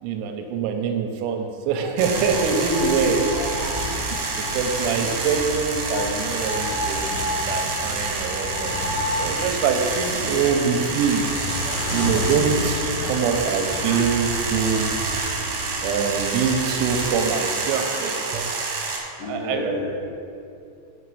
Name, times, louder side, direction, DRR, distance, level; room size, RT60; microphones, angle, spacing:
voice 1, 0.0-3.2 4.4-14.9 15.8-18.5 19.2-19.7, right 5 dB, 90° right, 4 dB, 3.3 m, -24 dB
sound 1, 2.0-17.1, left 2 dB, 70° left, 3.2 m, -32 dB
sound 2, 2.0-19.0, right 4 dB, 75° right, 2.6 m, -28 dB
voice 2, 3.3-3.7 5.9-6.0 11.6-11.7 12.9-13.0 13.9-14.0 19.2-20.1, left 1 dB, 55° left, -10 dB, 3.2 m, -31 dB
6.8 x 5.8 x 4.7 m, 2.5 s
omnidirectional pair, 6.0 m